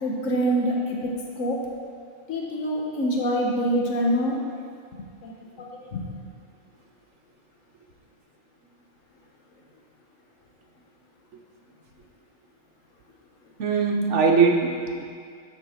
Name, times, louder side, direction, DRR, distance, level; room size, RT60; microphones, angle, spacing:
voice 1, 0.0-1.6 2.3-4.4 5.2-6.1, equal, 85° left, -1 dB, 1.5 m, -26 dB
voice 2, 13.6-15.0, right 5 dB, 70° right, 2 dB, 1.2 m, -21 dB
13.0 x 6.0 x 4.4 m, 2.2 s
omnidirectional pair, 1.3 m